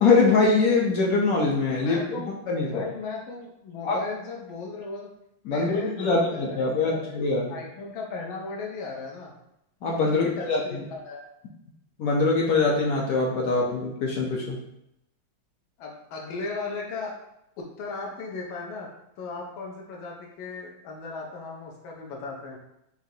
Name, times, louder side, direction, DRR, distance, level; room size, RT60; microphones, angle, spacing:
voice 1, 0.0-2.2 2.5-2.8 3.8-4.0 5.4-7.5 9.8-10.6 12.0-14.6, left 3 dB, 70° left, -2 dB, 0.8 m, -23 dB
voice 2, 1.8-2.3 2.6-5.1 5.4-7.2 7.5-9.3 10.1-11.2 15.8-17.2 17.6-18.9 19.2-22.6, left 4 dB, 90° left, -1 dB, 1.4 m, -36 dB
4.8 x 2.5 x 2.7 m, 0.81 s
omnidirectional pair, 2.1 m